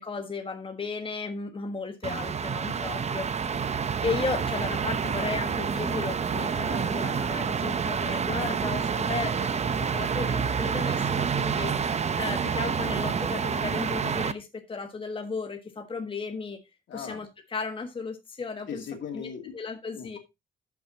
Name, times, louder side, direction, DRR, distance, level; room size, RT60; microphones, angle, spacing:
voice 1, 0.0-3.5 4.0-11.7 12.2-16.6 16.9-18.8 19.1-20.2, left 4 dB, 25° left, 1.4 m, -35 dB
sound 1, 2.0-14.3, right 6 dB, 35° right, 0.7 m, -28 dB
voice 2, 3.4-3.9 16.9-17.2 18.7-19.5 19.9-20.2, left 7 dB, 70° left, 2.6 m, -39 dB
13.5 x 6.0 x 2.8 m
cardioid pair, 90°, 20 cm